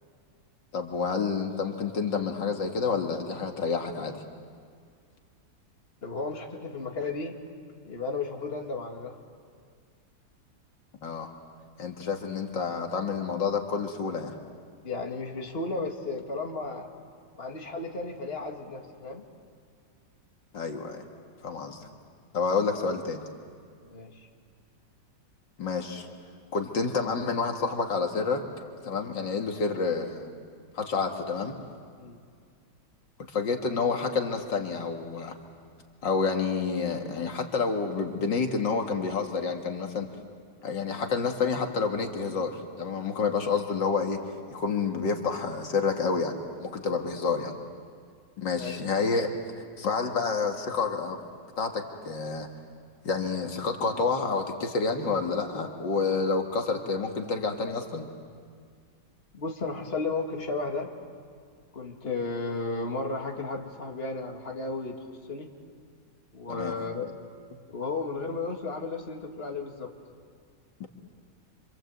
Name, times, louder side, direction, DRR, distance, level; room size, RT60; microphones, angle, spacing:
voice 1, 0.7-4.2 11.0-11.3 11.8-14.4 20.5-21.0 21.4-21.9 22.3-23.2 25.6-26.1 26.5-28.4 28.8-30.3 30.7-31.6 33.3-35.3 36.0-40.1 40.6-44.2 44.5-47.5 48.4-49.3 49.8-51.2 51.6-52.5 53.0-58.1 66.5-66.8 70.8-70.9, left 4 dB, 80° left, 3 dB, 2.5 m, -29 dB
voice 2, 6.0-7.4 7.8-9.2 14.8-16.9 17.4-19.2 23.8-24.1 32.0-32.2 46.9-47.1 48.6-48.8 59.3-60.9 61.7-65.5 66.3-67.1 67.7-69.9, left 3 dB, 35° left, 2 dB, 2.5 m, -34 dB
28.0 x 26.5 x 8.0 m, 2.1 s
omnidirectional pair, 1.9 m